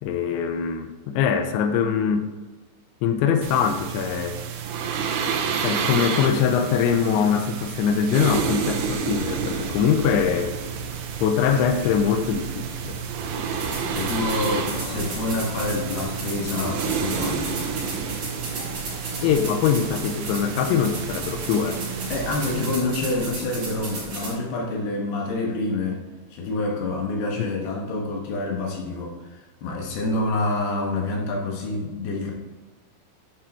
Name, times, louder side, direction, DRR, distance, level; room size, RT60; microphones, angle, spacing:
voice 1, 0.0-2.3 3.0-4.4 5.6-10.6 11.2-12.9 19.2-21.8 27.4-27.7, left 7 dB, 85° left, 7 dB, 2.9 m, -23 dB
sound 1, 3.4-22.7, right 7 dB, 85° right, 3.3 m, -30 dB
sound 2, 8.2-18.8, right 2 dB, 60° right, 3.8 m, -39 dB
sound 3, 13.5-24.3, right 2 dB, 40° right, 4.0 m, -34 dB
voice 2, 13.9-17.5 22.1-26.0 26.3-32.3, left 2 dB, 65° left, 0 dB, 2.9 m, -27 dB
11.0 x 5.4 x 4.2 m, 1.2 s
omnidirectional pair, 5.4 m